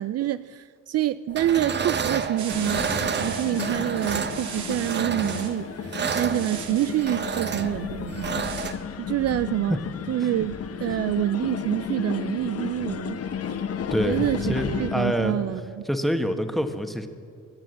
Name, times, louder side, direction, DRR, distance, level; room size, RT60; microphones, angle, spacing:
voice 1, 0.0-8.3 9.0-9.8 10.1-13.6 14.1-15.8, right 12 dB, 55° right, 0.4 m, -27 dB
sound 1, 1.3-8.7, right 6 dB, 35° right, 0.9 m, -30 dB
sound 2, 2.4-5.5 6.0-7.0 8.4-8.8, right 6 dB, 70° right, 2.0 m, -38 dB
sound 3, 2.5-15.0, left 7 dB, 50° left, 1.0 m, -33 dB
voice 2, 13.9-15.4 15.9-17.1, equal, ahead, 1.3 m, -26 dB
23.0 x 7.8 x 7.9 m
cardioid pair, 90°, 30 cm